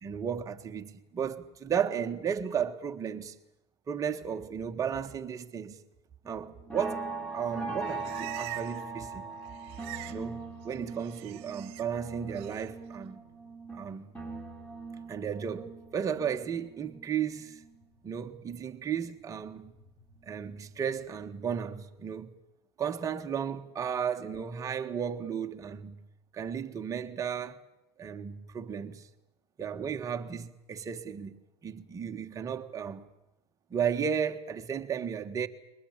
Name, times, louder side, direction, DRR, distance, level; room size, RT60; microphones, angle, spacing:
voice 1, 0.0-3.4 3.9-5.8 6.2-7.0 7.3-9.2 10.1-13.2 13.7-14.1 15.1-17.6 18.0-19.7 20.2-22.3 22.8-26.0 26.3-27.6 28.0-29.1 29.6-31.4 31.6-33.0 33.7-35.5, right 7 dB, 25° right, 1.5 m, -34 dB
sound 1, 6.2-18.4 18.8-20.4 20.7-21.1 21.4-21.5, right 3 dB, 10° left, 5.6 m, -41 dB
Livestock farm animals working animals, 7.5-8.9 9.2-10.2 10.5-11.8 12.3-12.7, right 21 dB, 50° right, 1.6 m, -45 dB
22.5 x 20.0 x 9.0 m
hypercardioid pair, 115°, 14 cm